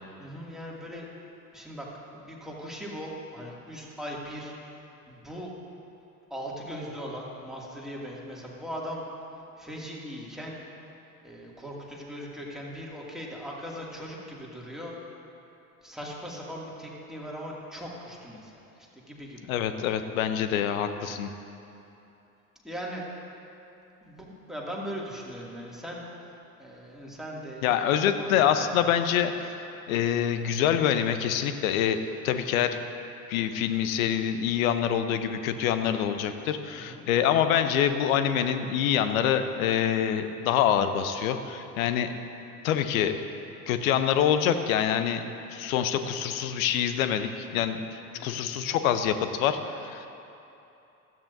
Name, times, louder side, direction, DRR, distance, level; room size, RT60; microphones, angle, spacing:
voice 1, 0.2-1.1 1.5-1.9 2.1-4.5 5.1-5.5 6.3-9.0 9.6-10.6 11.2-15.0 15.8-19.5 22.6-23.0 24.0-27.7 28.2-28.6 36.7-37.1 48.1-48.5, equal, ahead, -4 dB, 2.4 m, -39 dB
voice 2, 19.5-21.3 27.6-29.5 29.9-32.0 32.2-32.8 33.3-42.1 42.6-43.2 43.7-45.2 45.5-50.1, left 9 dB, 60° left, 9 dB, 0.9 m, -26 dB
16.0 x 13.5 x 2.7 m, 2.9 s
figure-of-eight pair, 65°, 46 cm